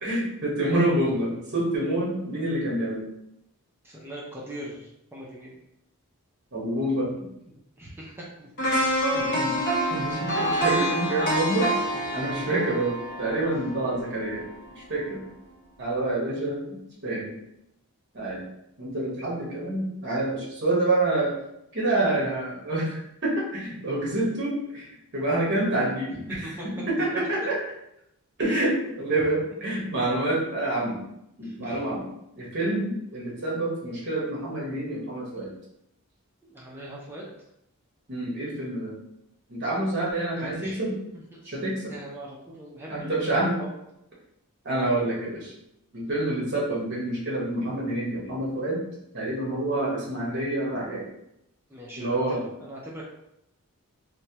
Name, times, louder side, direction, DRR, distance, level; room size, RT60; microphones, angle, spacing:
voice 1, 0.0-3.0 6.5-7.3 9.2-9.5 9.9-11.8 12.1-14.5 14.8-15.2 15.8-17.3 18.1-18.4 18.8-21.3 21.7-26.5 26.9-27.6 28.4-31.0 31.4-32.1 32.3-35.5 38.1-38.9 39.5-41.0 41.4-41.9 42.9-43.6 44.6-45.5 45.9-48.8 49.1-51.0 52.0-52.4, right 1 dB, 50° right, -5 dB, 1.0 m, -27 dB
voice 2, 3.8-5.6 7.8-9.7 12.1-12.4 26.3-26.7 27.1-27.3 31.4-31.9 36.4-37.3 40.4-41.6 41.9-43.1 43.6-43.7 51.7-53.1, right 1 dB, 10° right, -5 dB, 0.4 m, -42 dB
sound 1, 8.6-14.6 15.0-15.1, equal, 50° left, 0.7 m, -27 dB
3.0 x 2.2 x 2.8 m, 0.82 s
head